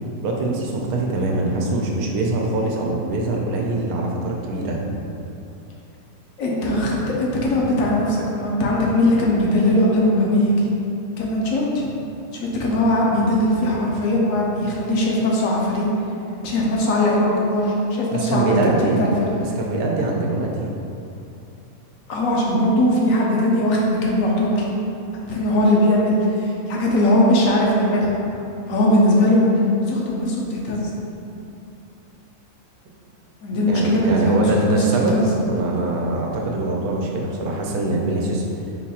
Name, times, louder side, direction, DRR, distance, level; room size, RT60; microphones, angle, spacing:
voice 1, 0.2-4.8 18.1-19.0 19.4-20.7 33.7-38.4, right 2 dB, 90° right, -1 dB, 1.1 m, -23 dB
voice 2, 6.4-10.7 11.2-11.8 12.4-15.9 16.4-19.4 22.1-24.7 25.2-28.1 28.7-29.5 29.9-30.9 33.4-34.8 35.1-35.2, left 1 dB, 70° left, -3 dB, 1.0 m, -20 dB
3.9 x 2.4 x 4.1 m, 2.7 s
omnidirectional pair, 1.5 m